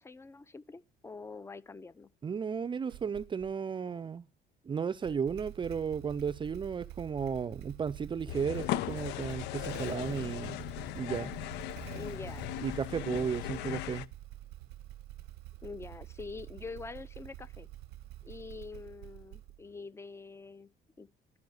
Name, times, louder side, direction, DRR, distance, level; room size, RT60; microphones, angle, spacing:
voice 1, 0.0-2.1 11.9-12.5 15.6-17.7 18.2-20.7 21.0-21.1, left 4 dB, 15° left, 0.6 m, -45 dB
voice 2, 2.2-4.3 4.6-10.6 11.0-11.3 12.6-14.1, right 6 dB, 30° right, 0.5 m, -34 dB
Motorcycle / Engine starting, 2.9-3.6 4.9-19.8, right 15 dB, 90° right, 0.6 m, -47 dB
sound 1, 8.3-14.1, left 15 dB, 90° left, 0.5 m, -38 dB
12.0 x 5.6 x 7.8 m
cardioid pair, 110°, 17 cm